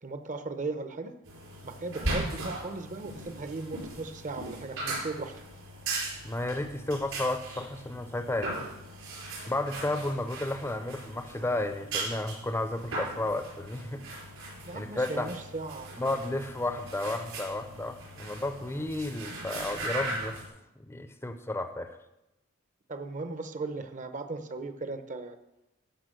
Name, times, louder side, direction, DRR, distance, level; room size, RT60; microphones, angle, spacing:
voice 1, 0.0-1.1 1.6-5.3 14.6-16.2 22.9-25.4, right 3 dB, 35° right, 8 dB, 0.8 m, -37 dB
sound 1, 1.2-20.5, right 2 dB, 70° right, 4.7 m, -38 dB
voice 2, 6.2-8.7 9.5-14.0 14.7-15.3 16.0-20.4 20.8-22.0, left 2 dB, 10° left, 8 dB, 0.6 m, -32 dB
13.0 x 5.7 x 7.7 m, 0.93 s
head